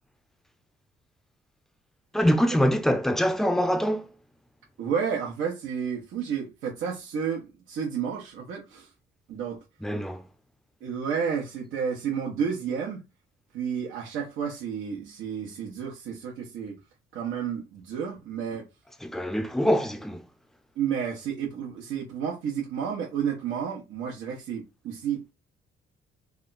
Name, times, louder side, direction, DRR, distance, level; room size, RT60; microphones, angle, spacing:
voice 1, 2.1-4.1 9.8-10.2 19.0-20.2, equal, ahead, 0.6 m, -24 dB
voice 2, 4.8-8.9 9.3-9.6 10.8-13.0 13.5-16.8 17.1-18.7 20.8-25.3, right 7 dB, 85° right, 1.2 m, -31 dB
3.5 x 2.3 x 4.0 m
cardioid pair, 90°, 20 cm